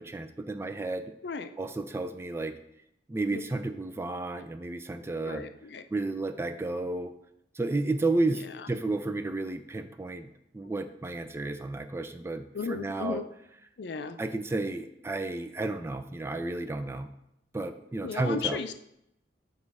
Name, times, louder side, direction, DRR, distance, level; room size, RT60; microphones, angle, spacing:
voice 1, 0.0-1.1 1.6-2.5 3.1-5.4 5.9-7.1 7.6-10.3 10.5-13.2 14.2-17.1 17.5-18.6, right 2 dB, 15° right, 8 dB, 0.3 m, -32 dB
voice 2, 5.3-5.8 8.3-8.7 12.5-13.2 13.8-14.2 18.0-18.8, left 5 dB, 65° left, 9 dB, 0.5 m, -35 dB
7.4 x 3.1 x 4.8 m, 0.78 s
head